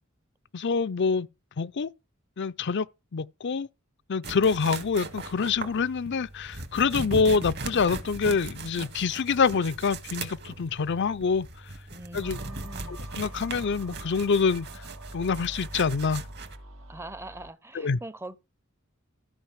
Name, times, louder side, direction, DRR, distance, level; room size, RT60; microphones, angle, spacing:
voice 1, 0.5-1.3 1.6-1.9 2.4-2.9 3.1-3.7 4.1-11.5 12.1-12.4 12.9-14.9 15.1-16.2 17.7-18.0, left 5 dB, 55° left, 0.5 m, -26 dB
sound 1, 4.2-16.6, right 3 dB, 55° right, 2.0 m, -39 dB
voice 2, 11.9-13.1 16.9-18.4, right 1 dB, 10° right, 0.7 m, -42 dB
sound 2, 12.2-17.5, right 1 dB, 85° right, 2.4 m, -44 dB
13.5 x 5.3 x 7.4 m
head